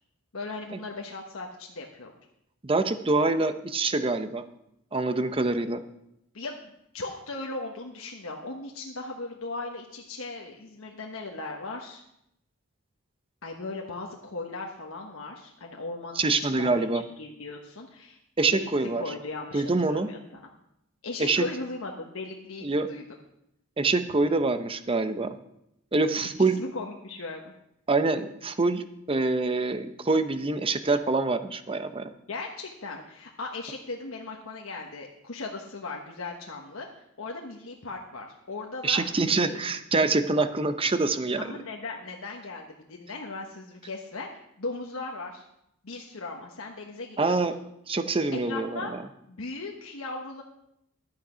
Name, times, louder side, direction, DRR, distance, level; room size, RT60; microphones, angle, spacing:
voice 1, 0.3-2.1 6.3-12.0 13.4-16.8 17.2-18.2 18.5-18.7 19.0-20.5 21.0-23.1 26.2-27.5 32.3-36.9 37.2-39.6 41.4-44.3 44.6-45.4 45.8-47.6 48.3-48.9 49.3-50.4, left 3 dB, 85° left, 0 dB, 1.2 m, -38 dB
voice 2, 2.6-4.4 4.9-5.8 16.2-17.0 18.4-19.0 19.5-20.1 21.2-21.4 22.6-22.9 23.8-25.3 25.9-26.6 27.9-32.1 38.8-41.4 47.2-47.5 47.9-48.9, right 3 dB, 25° right, 10 dB, 0.7 m, -25 dB
12.0 x 8.3 x 5.1 m, 0.78 s
head